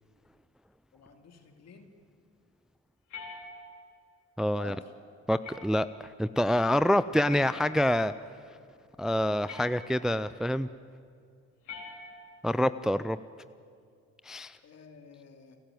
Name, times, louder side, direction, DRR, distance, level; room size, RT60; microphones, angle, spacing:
voice 1, 0.9-1.9 4.5-4.9 14.6-15.6, left 5 dB, 60° left, 5 dB, 2.7 m, -50 dB
sound 1, 3.1-4.0 5.4-6.0 7.3-8.2 9.5-10.2 11.6-12.5, left 3 dB, 80° left, 4.5 m, -45 dB
voice 2, 4.4-4.7 5.3-8.1 9.0-10.7 12.4-13.2 14.2-14.6, equal, ahead, 14 dB, 0.4 m, -26 dB
29.5 x 12.0 x 9.2 m, 2.3 s
cardioid pair, 90°, 30 cm